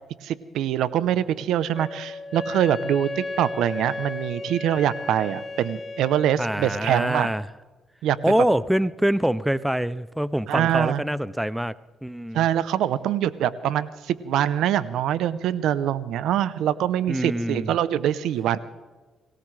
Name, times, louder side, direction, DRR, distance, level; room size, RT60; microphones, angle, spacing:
voice 1, 0.2-7.3 8.0-8.2 10.5-11.0 12.3-18.6, right 11 dB, 85° right, 15 dB, 0.8 m, -24 dB
Wind instrument woodwind instrument, 1.7-6.4, left 2 dB, 30° left, 1.4 m, -34 dB
voice 2, 6.4-7.5 8.2-11.7 12.0-12.4 17.1-17.8, right 1 dB, 5° right, 17 dB, 0.5 m, -24 dB
24.0 x 18.0 x 3.3 m, 1.3 s
cardioid pair, 90°, 0 cm